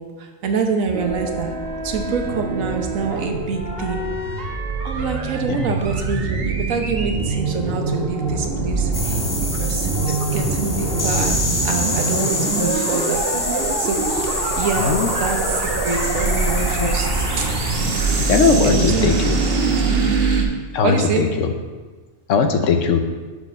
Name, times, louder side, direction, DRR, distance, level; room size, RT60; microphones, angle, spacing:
voice 1, 0.0-1.5 1.8-4.1 4.8-9.2 9.5-13.2 13.8-17.5 18.6-19.1 20.8-21.3, right 5 dB, 85° right, 4 dB, 1.3 m, -26 dB
sound 1, 0.9-20.4, right 3 dB, 50° right, 1.1 m, -23 dB
sound 2, 8.9-18.8, left 2 dB, 25° left, 0.4 m, -27 dB
voice 2, 14.8-15.1 16.8-16.9 18.3-19.4 20.7-21.5 22.3-23.0, left 5 dB, 70° left, 6 dB, 1.0 m, -19 dB
6.1 x 5.5 x 6.3 m, 1.3 s
omnidirectional pair, 1.4 m